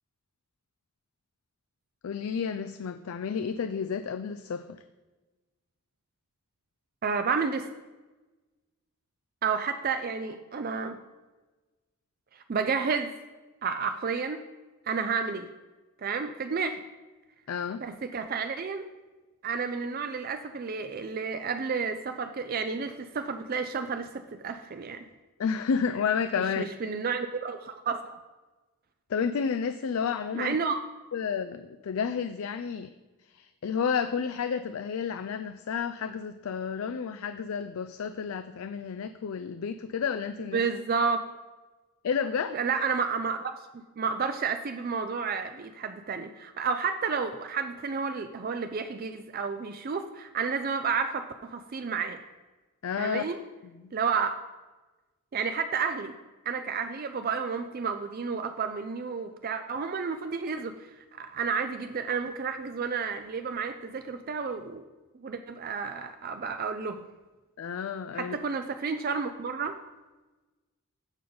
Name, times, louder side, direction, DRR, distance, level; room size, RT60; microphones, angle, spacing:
voice 1, 2.0-4.8 17.5-17.8 25.4-26.7 29.1-30.6 31.1-32.9 33.2-40.6 42.0-42.6 52.8-53.2 53.6-53.9 67.6-68.4, left 6 dB, 75° left, 10 dB, 0.4 m, -31 dB
voice 2, 7.0-7.7 9.4-11.0 12.3-13.1 13.6-14.4 14.9-15.5 16.0-16.8 17.8-18.9 19.4-25.1 26.6-28.2 30.3-30.8 40.5-41.3 42.5-43.4 43.7-52.2 53.0-53.4 53.9-54.4 55.3-56.1 56.4-64.8 65.2-67.0 68.2-69.8, right 5 dB, 40° right, 8 dB, 0.4 m, -31 dB
15.5 x 5.1 x 3.9 m, 1.2 s
head